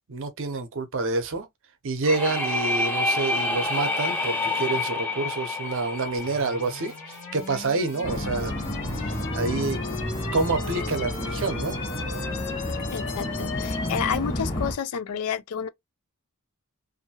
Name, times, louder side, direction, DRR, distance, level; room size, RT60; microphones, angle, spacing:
voice 1, 0.1-1.5 1.8-8.5 9.0-9.8 10.3-11.8, right 3 dB, 60° right, 0.7 m, -28 dB
sound 1, 2.0-7.7, left 2 dB, 10° left, 0.7 m, -28 dB
sound 2, 6.2-14.2, left 5 dB, 55° left, 0.8 m, -37 dB
sound 3, 8.0-14.7, left 1 dB, 40° left, 1.0 m, -31 dB
voice 2, 12.9-15.7, left 7 dB, 75° left, 0.4 m, -30 dB
2.7 x 2.5 x 2.7 m
head